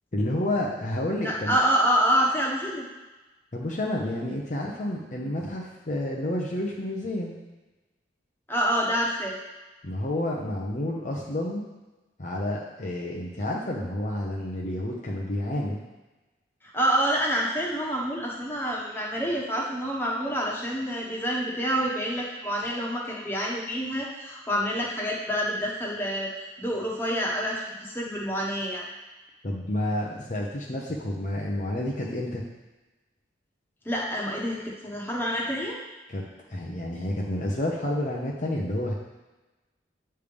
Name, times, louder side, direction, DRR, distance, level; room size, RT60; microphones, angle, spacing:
voice 1, 0.1-1.6 3.5-7.4 9.8-11.6 12.2-15.8 29.4-32.4 36.1-36.2 36.5-38.9, left 1 dB, 45° left, -2 dB, 0.8 m, -30 dB
voice 2, 1.2-2.8 8.5-9.3 16.7-28.9 33.8-35.8, equal, 15° left, -3 dB, 1.2 m, -27 dB
8.4 x 3.4 x 5.2 m, 1.1 s
head